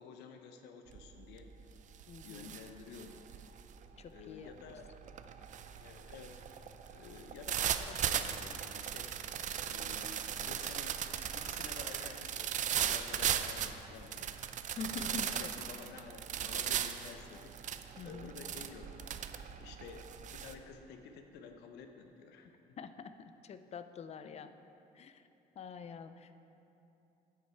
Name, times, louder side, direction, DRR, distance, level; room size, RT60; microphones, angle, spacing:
voice 1, 0.0-1.5 2.2-3.2 4.1-4.9 5.7-6.6 6.9-9.1 9.6-11.0 11.3-14.3 15.2-17.7 18.0-22.5, left 5 dB, 85° left, 6 dB, 0.9 m, -51 dB
sound 1, 0.9-1.2 1.6-20.5, right 9 dB, 45° right, 0.5 m, -38 dB
voice 2, 2.1-2.5 4.0-4.5 14.8-15.5 18.0-18.3 22.8-23.1 23.4-24.5 25.0-25.2 25.6-26.3, left 5 dB, 40° left, 10 dB, 0.5 m, -45 dB
9.6 x 8.6 x 4.5 m, 2.9 s
cardioid pair, 110°, 17 cm